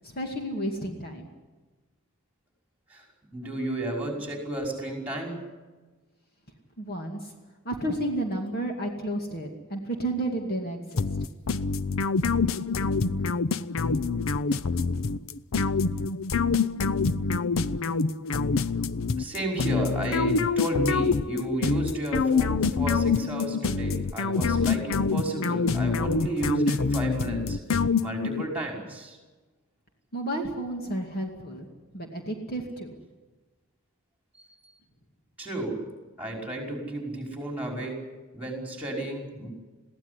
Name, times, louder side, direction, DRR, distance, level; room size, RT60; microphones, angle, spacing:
voice 1, 0.0-1.3 6.8-7.3 7.6-11.3 30.1-31.7 31.9-33.0, right 1 dB, 45° left, 2 dB, 2.4 m, -32 dB
voice 2, 3.3-5.4 19.2-27.6 28.0-29.2 35.4-35.8 36.2-38.0 38.3-39.5, right 1 dB, 5° right, 1 dB, 5.4 m, -32 dB
sound 1, 11.0-28.5, left 4 dB, 65° left, 0.6 m, -26 dB
22.0 x 16.0 x 9.8 m, 1.3 s
head